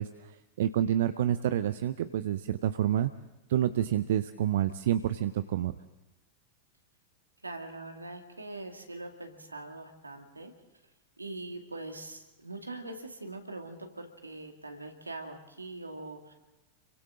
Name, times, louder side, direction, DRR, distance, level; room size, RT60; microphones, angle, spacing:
voice 1, 0.0-3.1 3.5-5.7, right 11 dB, 55° right, 12 dB, 0.6 m, -28 dB
voice 2, 7.4-10.5 11.2-16.3, right 2 dB, 80° right, 4 dB, 2.2 m, -42 dB
29.0 x 23.5 x 3.8 m, 1.0 s
figure-of-eight pair, 90°, 0 cm